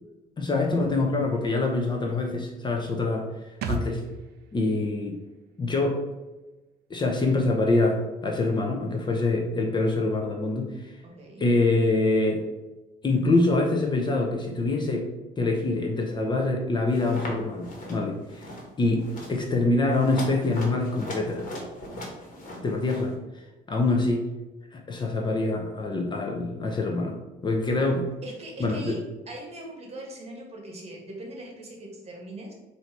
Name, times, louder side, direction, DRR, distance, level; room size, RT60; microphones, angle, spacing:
voice 1, 0.4-3.2 3.7-4.0 4.5-5.2 5.6-6.0 6.9-10.9 11.4-12.4 13.0-15.1 15.4-18.4 18.8-21.4 22.6-23.1 23.7-24.2 24.7-27.2 27.4-28.1 28.6-29.0, left 2 dB, 25° left, 1 dB, 0.7 m, -25 dB
sound 1, 3.6-7.1 7.4-7.5, right 4 dB, 70° right, 0.5 m, -38 dB
voice 2, 11.0-11.4 28.2-29.0 29.3-32.5, right 1 dB, 40° right, 0 dB, 1.4 m, -40 dB
sound 2, 16.9-17.3 17.6-18.0 18.3-18.7 19.0-19.3 19.9-23.1, left 1 dB, 50° left, 1.4 m, -38 dB
4.3 x 2.8 x 4.5 m, 1.1 s
cardioid pair, 110°, 17 cm